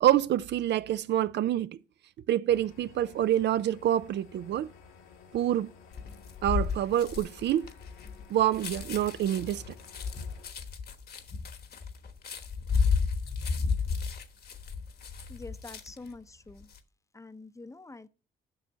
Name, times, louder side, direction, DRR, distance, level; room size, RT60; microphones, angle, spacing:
voice 1, 0.0-1.8 2.3-4.7 5.3-5.7 6.4-7.7 8.3-9.7, right 12 dB, 60° right, 0.4 m, -26 dB
sound 1, 2.5-10.5, left 5 dB, 90° left, 2.0 m, -54 dB
sound 2, 5.9-16.1 16.5-16.8, left 5 dB, 55° left, 1.3 m, -33 dB
voice 2, 15.3-16.7 17.1-18.1, left 3 dB, 15° left, 0.7 m, -46 dB
7.0 x 5.7 x 7.3 m
cardioid pair, 90°, 20 cm